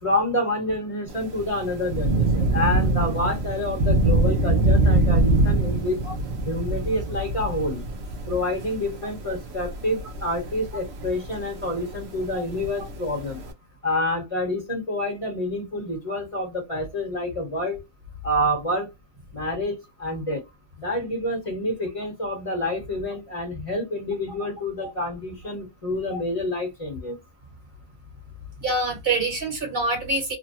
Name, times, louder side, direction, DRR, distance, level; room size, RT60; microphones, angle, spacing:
voice 1, 0.0-6.0 6.4-7.8 8.3-13.4 13.8-17.8 18.2-18.9 19.3-20.4 20.8-27.2, left 1 dB, 30° left, 1.3 m, -28 dB
Thunder / Rain, 1.1-13.5, right 2 dB, 80° right, 1.0 m, -24 dB
voice 2, 28.6-30.4, right 2 dB, 60° right, 1.5 m, -25 dB
3.1 x 2.2 x 2.7 m
omnidirectional pair, 1.1 m